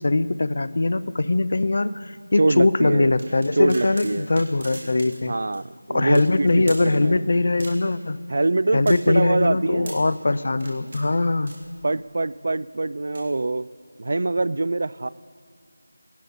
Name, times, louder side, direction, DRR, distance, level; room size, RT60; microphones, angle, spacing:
voice 1, 0.0-5.3 5.9-8.2 8.7-11.5, left 2 dB, 50° left, 15 dB, 0.5 m, -21 dB
voice 2, 2.4-3.1 3.6-4.3 5.3-7.2 8.3-10.0 11.8-13.7 14.0-15.1, right 2 dB, 50° right, 18 dB, 0.3 m, -24 dB
sound 1, 3.2-5.3 5.5-5.6 6.1-6.9 7.6-8.0 8.4-10.1 10.5-11.0 11.4-12.0 12.9-13.2, right 1 dB, 35° right, 2.4 m, -41 dB
17.5 x 11.5 x 4.1 m, 2.1 s
figure-of-eight pair, 175°, 0 cm